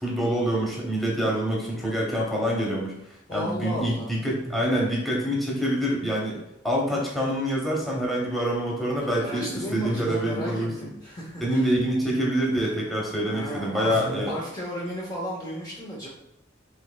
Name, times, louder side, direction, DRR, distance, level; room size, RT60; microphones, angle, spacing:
voice 1, 0.0-3.0 3.3-10.9 11.4-14.3, equal, ahead, -3 dB, 0.9 m, -26 dB
voice 2, 3.3-4.1 9.0-11.7 12.8-16.1, equal, 20° left, -5 dB, 0.7 m, -34 dB
6.2 x 3.2 x 2.3 m, 0.84 s
head